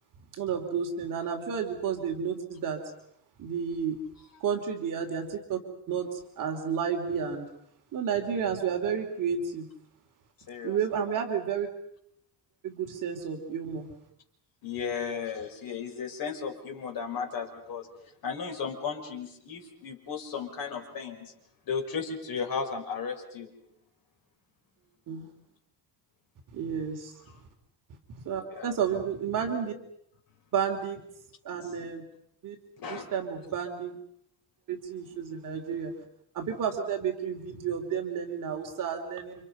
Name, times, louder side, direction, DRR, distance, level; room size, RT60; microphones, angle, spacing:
voice 1, 0.4-2.8 3.4-4.0 4.4-5.6 5.9-7.4 7.9-9.7 10.6-11.7 12.6-13.9 25.1-25.3 26.5-27.1 28.1-29.7 30.5-31.0 31.4-32.0 32.4-32.6 32.9-33.9 34.7-35.9 36.3-39.3, right 7 dB, 50° right, 3 dB, 3.0 m, -31 dB
voice 2, 10.5-11.0 14.6-17.9 18.2-21.3 21.7-23.5 28.5-28.7 32.8-33.1, left 6 dB, 55° left, 2 dB, 5.9 m, -35 dB
30.0 x 27.0 x 5.5 m, 0.74 s
cardioid pair, 175°, 42 cm